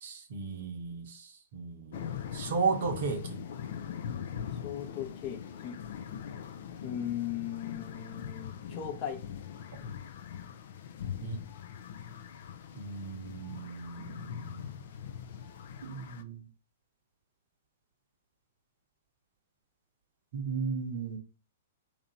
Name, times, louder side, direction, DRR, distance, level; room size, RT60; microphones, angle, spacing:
voice 1, 0.0-3.4 9.8-9.9 11.2-11.4 12.7-14.7 15.8-16.4 20.3-21.2, right 5 dB, 55° right, 0.8 m, -35 dB
sound 1, 1.9-16.2, left 8 dB, 55° left, 0.4 m, -42 dB
voice 2, 4.6-5.7 6.8-9.2, left 10 dB, 35° left, 0.8 m, -37 dB
2.9 x 2.5 x 4.1 m
figure-of-eight pair, 110°, 0 cm